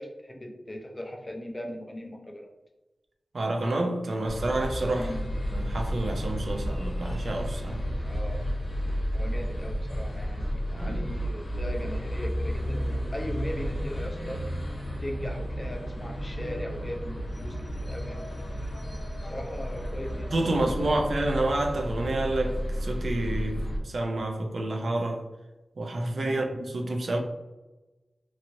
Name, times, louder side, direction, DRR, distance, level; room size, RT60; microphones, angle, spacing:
voice 1, 0.0-2.5 5.0-5.3 8.0-8.4 9.1-14.4 14.9-18.3 19.3-21.1, left 1 dB, 25° left, 0.5 m, -39 dB
voice 2, 3.3-5.1 5.5-7.8 10.8-11.1 20.3-25.3 25.8-27.2, right 2 dB, 70° right, 0.4 m, -29 dB
sound 1, 4.2-23.8, equal, 85° left, 0.8 m, -32 dB
2.9 x 2.9 x 2.5 m
wide cardioid pair, 95°, 0 cm